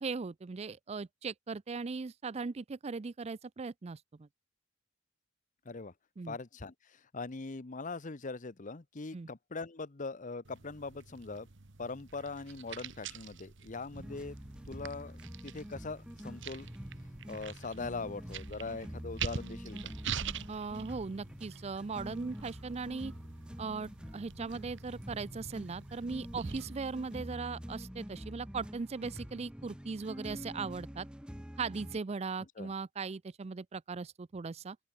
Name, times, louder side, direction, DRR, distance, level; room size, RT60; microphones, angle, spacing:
voice 1, 0.0-4.3 6.2-6.4 9.1-9.3 20.5-23.1 23.6-31.1 31.6-34.8, right 4 dB, 30° right, 0.4 m, -39 dB
voice 2, 6.3-11.5 11.8-14.4 14.7-16.7 17.3-19.9 32.6-32.7, left 3 dB, 40° left, 0.8 m, -41 dB
sound 1, 10.4-27.4, right 6 dB, 60° right, 1.3 m, -46 dB
sound 2, 13.9-32.0, equal, 5° right, 1.1 m, -46 dB
open air
head